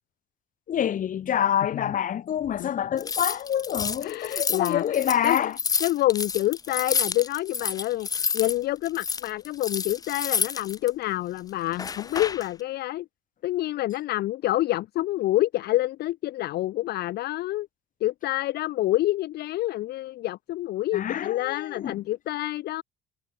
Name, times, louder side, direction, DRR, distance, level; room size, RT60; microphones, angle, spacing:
voice 1, 0.7-5.6 20.9-22.0, left 9 dB, 50° left, 3.5 m, -26 dB
sound 1, 3.0-8.6 8.8-10.9 11.7-12.5, left 5 dB, 20° left, 0.4 m, -29 dB
voice 2, 4.0-5.5 5.8-8.1 8.3-13.1 13.4-17.7 18.0-22.8, left 15 dB, 70° left, 1.1 m, -27 dB
cardioid pair, 110°, 17 cm